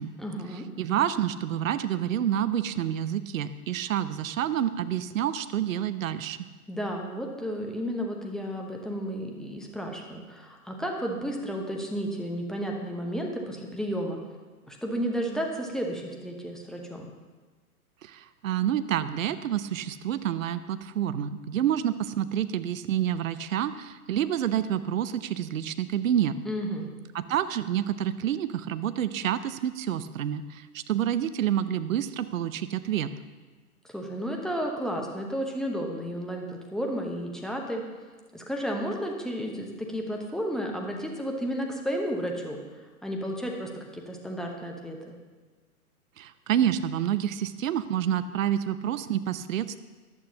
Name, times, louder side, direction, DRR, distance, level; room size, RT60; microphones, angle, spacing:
voice 1, 0.2-0.7 6.7-14.2 14.7-17.1 26.5-26.9 33.9-37.8 38.3-42.6 43.0-45.2, equal, ahead, 0 dB, 1.0 m, -32 dB
voice 2, 0.8-6.5 18.0-26.4 27.1-33.1 46.2-49.8, right 10 dB, 60° right, 13 dB, 0.7 m, -28 dB
14.0 x 11.0 x 2.9 m, 1.3 s
figure-of-eight pair, 115°, 45 cm